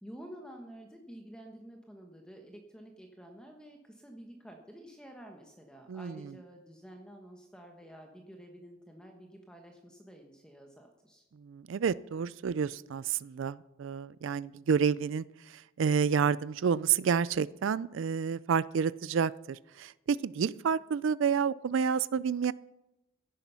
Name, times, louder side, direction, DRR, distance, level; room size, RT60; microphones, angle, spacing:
voice 1, 0.0-11.3, right 1 dB, 5° left, 2 dB, 1.2 m, -50 dB
voice 2, 5.9-6.2 11.4-22.5, right 6 dB, 70° right, 19 dB, 0.4 m, -29 dB
17.0 x 10.0 x 5.6 m, 0.94 s
head